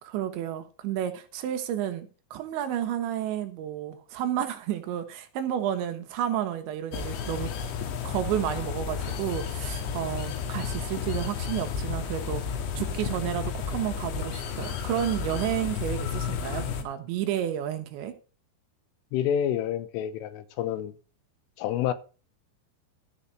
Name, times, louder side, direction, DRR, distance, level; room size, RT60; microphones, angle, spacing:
voice 1, 0.0-7.6 8.0-12.4 12.8-18.1, right 11 dB, 75° right, 3.0 m, -31 dB
sound 1, 6.9-16.8, left 6 dB, 70° left, 3.5 m, -32 dB
voice 2, 19.1-20.9 21.6-21.9, left 10 dB, 85° left, 3.5 m, -28 dB
13.5 x 5.6 x 6.2 m
omnidirectional pair, 5.8 m